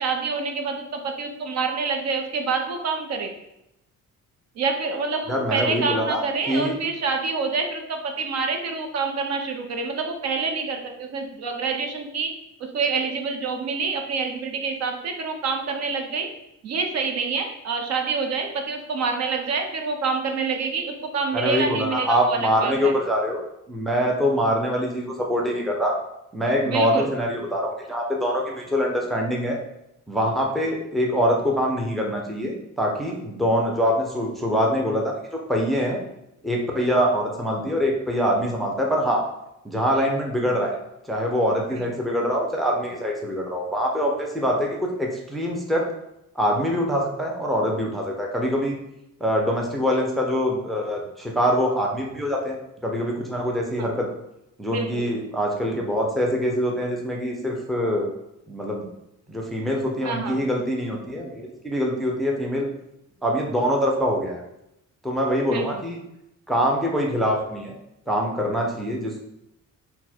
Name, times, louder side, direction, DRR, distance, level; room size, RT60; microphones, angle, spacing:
voice 1, 0.0-3.3 4.6-12.3 12.6-16.3 16.6-22.9 26.6-27.1 41.7-41.9 53.8-53.9 54.7-55.0 60.0-60.5 65.5-65.8, right 4 dB, 55° right, 4 dB, 0.6 m, -27 dB
voice 2, 5.3-6.2 6.5-6.8 21.3-23.4 23.7-26.0 26.3-29.6 30.1-35.1 35.5-36.0 36.4-39.2 39.6-40.8 41.1-45.9 46.4-48.8 49.2-52.6 52.8-54.1 54.6-58.1 58.5-58.9 59.3-62.7 63.2-64.4 65.0-66.0 66.5-67.7 68.1-69.2, equal, ahead, -1 dB, 0.5 m, -24 dB
4.2 x 2.2 x 4.2 m, 0.85 s
cardioid pair, 135°, 31 cm